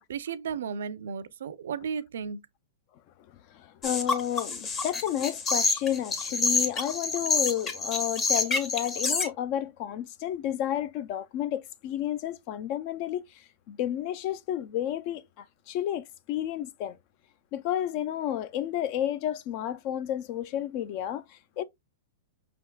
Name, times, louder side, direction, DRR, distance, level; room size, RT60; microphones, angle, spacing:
voice 1, 0.1-2.4, right 6 dB, 80° right, 0.5 m, -34 dB
voice 2, 3.5-17.0 17.5-21.6, left 11 dB, 40° left, 0.4 m, -31 dB
sound 1, 3.8-9.3, left 3 dB, 20° left, 0.9 m, -28 dB
5.4 x 3.4 x 2.2 m
hypercardioid pair, 145°, 0 cm